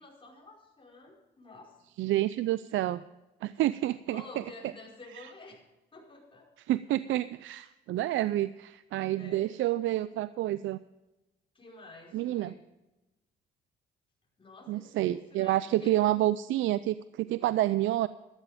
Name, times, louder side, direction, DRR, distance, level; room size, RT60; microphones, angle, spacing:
voice 1, 0.0-1.8 4.1-5.6 5.9-6.5 8.4-8.5 9.2-9.6 11.5-12.6 14.4-16.0, left 2 dB, 25° left, -2 dB, 5.0 m, -50 dB
voice 2, 2.0-3.0 3.4-4.2 5.1-5.3 6.7-10.8 12.1-12.5 14.7-18.1, right 14 dB, 75° right, 15 dB, 0.4 m, -29 dB
12.5 x 12.5 x 5.0 m, 1.0 s
cardioid pair, 90°, 20 cm